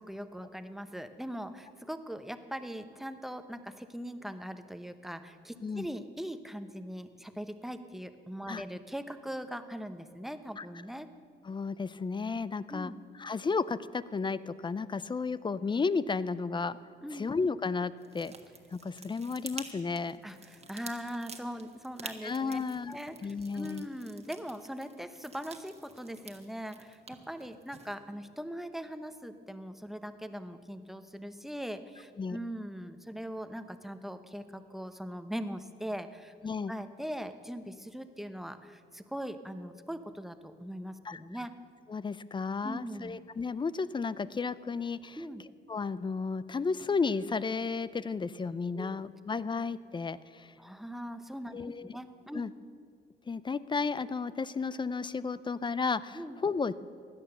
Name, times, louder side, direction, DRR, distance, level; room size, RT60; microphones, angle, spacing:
voice 1, 0.0-11.1 12.7-13.0 17.0-17.3 20.2-22.6 22.9-36.3 36.7-41.5 42.6-43.2 45.2-45.4 48.7-49.0 50.6-52.4 56.1-56.4, equal, ahead, 10 dB, 0.8 m, -41 dB
voice 2, 11.4-12.9 13.2-16.8 17.1-18.3 18.7-20.2 22.2-23.9 32.2-32.4 36.4-36.7 41.0-41.2 41.9-45.2 45.7-50.5 51.5-52.0 52.3-52.5 53.3-56.7, left 4 dB, 25° left, 17 dB, 0.5 m, -33 dB
sound 1, 18.0-27.9, right 4 dB, 30° right, 1.4 m, -49 dB
16.5 x 11.0 x 6.7 m, 2.2 s
cardioid pair, 90°, 20 cm